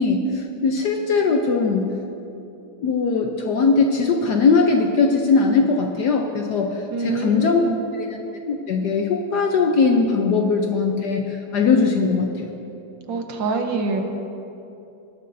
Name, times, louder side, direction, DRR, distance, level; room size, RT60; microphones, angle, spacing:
voice 1, 0.0-1.9 2.8-7.6 7.9-8.2 8.5-12.5, left 4 dB, 65° left, 3 dB, 1.1 m, -20 dB
voice 2, 6.9-7.9 13.1-14.0, right 3 dB, 65° right, 4 dB, 1.5 m, -25 dB
19.5 x 12.0 x 2.6 m, 2.9 s
omnidirectional pair, 2.3 m